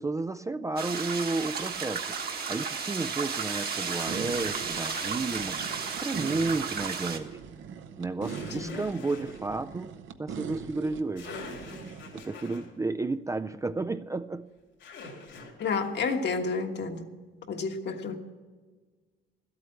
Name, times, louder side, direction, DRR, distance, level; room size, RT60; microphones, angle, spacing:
voice 1, 0.0-7.4 8.0-11.4 12.1-14.5, right 3 dB, 15° right, 0.3 m, -32 dB
sound 1, 0.8-7.2, right 6 dB, 50° right, 1.4 m, -33 dB
sound 2, 2.9-3.1 4.4-6.1 8.2-9.4 10.8-10.9 11.2-12.7 14.8-15.9, left 3 dB, 80° left, 3.3 m, -45 dB
sound 3, 4.1-12.2, right 7 dB, 75° right, 0.8 m, -41 dB
voice 2, 15.6-17.1 17.5-18.2, left 4 dB, 60° left, 1.4 m, -30 dB
12.5 x 8.5 x 8.0 m
cardioid pair, 90°, 20 cm